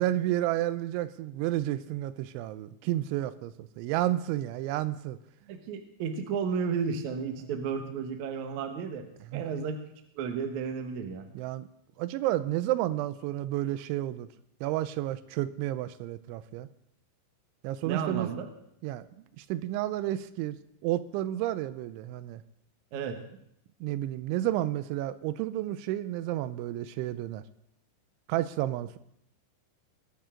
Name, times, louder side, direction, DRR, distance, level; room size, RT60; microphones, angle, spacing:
voice 1, 0.0-5.2 7.4-7.5 9.3-9.4 11.3-11.7 12.0-14.3 14.6-16.7 17.6-18.3 18.8-19.1 19.4-20.6 20.8-22.4 23.8-27.4 28.3-29.0, right 14 dB, 90° right, 14 dB, 3.0 m, -31 dB
voice 2, 5.5-9.1 9.3-9.8 10.1-11.3 17.8-18.5 22.9-23.2, right 6 dB, 70° right, 6 dB, 1.8 m, -33 dB
21.0 x 9.0 x 3.8 m, 0.76 s
omnidirectional pair, 5.3 m